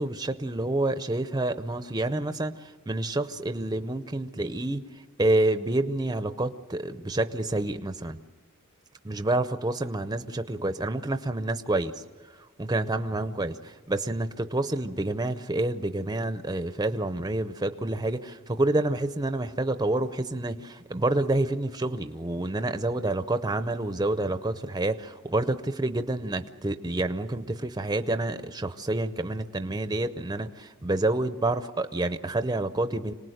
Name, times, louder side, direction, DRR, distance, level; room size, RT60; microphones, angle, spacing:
voice 1, 0.0-4.8 5.2-8.2 9.0-11.9 12.6-33.1, right 2 dB, 15° right, 10 dB, 0.6 m, -28 dB
26.5 x 19.0 x 7.9 m, 1.3 s
head